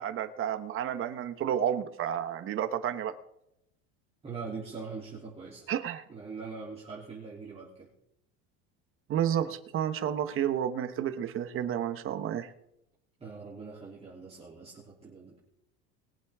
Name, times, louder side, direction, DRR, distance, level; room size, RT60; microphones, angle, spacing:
voice 1, 0.0-3.1 5.7-6.0 9.1-12.5, right 9 dB, 45° right, 10 dB, 1.2 m, -31 dB
voice 2, 4.2-5.7 6.1-7.9 13.2-15.4, right 4 dB, 20° right, -6 dB, 3.2 m, -42 dB
21.5 x 8.4 x 3.7 m, 0.80 s
supercardioid pair, 125°, 31 cm